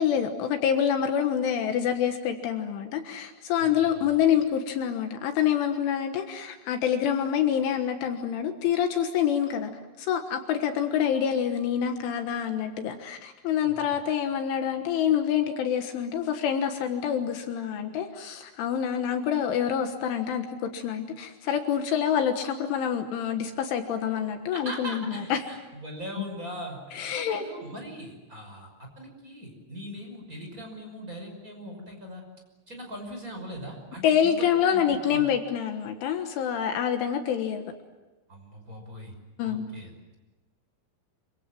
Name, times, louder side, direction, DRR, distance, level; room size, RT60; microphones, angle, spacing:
voice 1, 0.0-9.7 10.0-25.4 26.9-27.4 34.0-37.7 39.4-39.7, left 9 dB, 75° left, 6 dB, 3.7 m, -26 dB
voice 2, 3.6-4.2 13.6-14.0 24.5-32.2 32.7-35.3 38.3-39.1 39.4-40.1, equal, 15° right, 2 dB, 5.7 m, -41 dB
27.0 x 25.5 x 7.6 m, 1.2 s
omnidirectional pair, 5.9 m